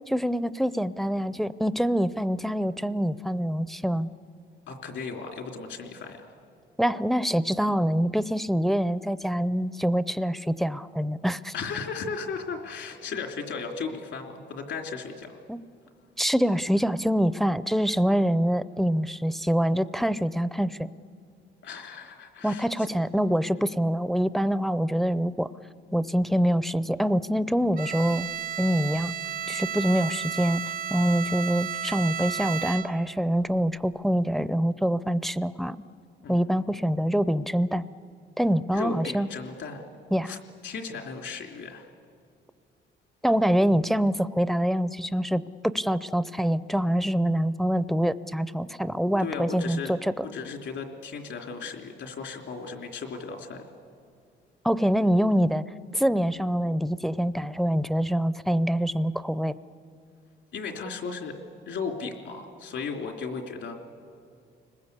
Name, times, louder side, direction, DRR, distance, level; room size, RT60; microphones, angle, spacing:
voice 1, 0.1-4.1 6.8-11.5 15.5-15.6 16.2-20.9 22.4-25.5 25.9-28.3 28.6-29.1 29.5-30.6 30.9-35.8 36.3-37.9 38.4-39.3 40.1-40.3 43.2-50.3 54.6-55.6 55.9-59.6, equal, ahead, 14 dB, 0.6 m, -25 dB
voice 2, 4.7-6.3 11.5-15.4 21.6-22.7 36.2-36.5 38.7-39.8 40.2-41.9 49.2-53.6 60.5-61.3 61.7-63.8, left 5 dB, 75° left, 3 dB, 3.3 m, -36 dB
Bowed string instrument, 27.8-33.2, right 9 dB, 45° right, 0.5 m, -33 dB
29.5 x 20.5 x 8.3 m, 2.4 s
cardioid pair, 90°, 20 cm